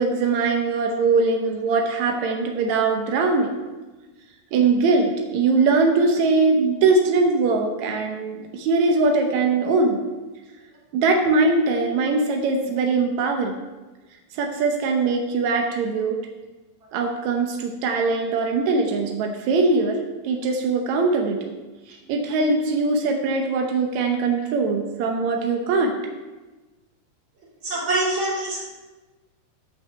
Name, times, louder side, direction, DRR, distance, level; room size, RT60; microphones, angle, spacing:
voice 1, 0.0-3.5 4.5-10.0 10.9-13.5 14.3-16.2 16.9-20.0 20.2-21.6 21.9-25.9, right 3 dB, 80° right, 3 dB, 1.6 m, -21 dB
voice 2, 27.6-28.6, right 2 dB, 30° right, -4 dB, 3.8 m, -24 dB
11.0 x 5.6 x 6.7 m, 1.2 s
omnidirectional pair, 4.5 m